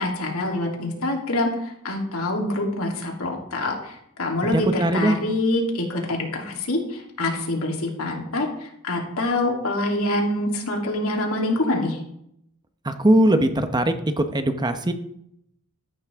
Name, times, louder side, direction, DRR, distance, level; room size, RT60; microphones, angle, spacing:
voice 1, 0.0-12.0, left 1 dB, 80° left, 0 dB, 3.3 m, -25 dB
voice 2, 4.5-5.2 12.8-14.9, right 1 dB, 20° right, 8 dB, 0.9 m, -20 dB
14.5 x 12.5 x 3.6 m, 0.74 s
head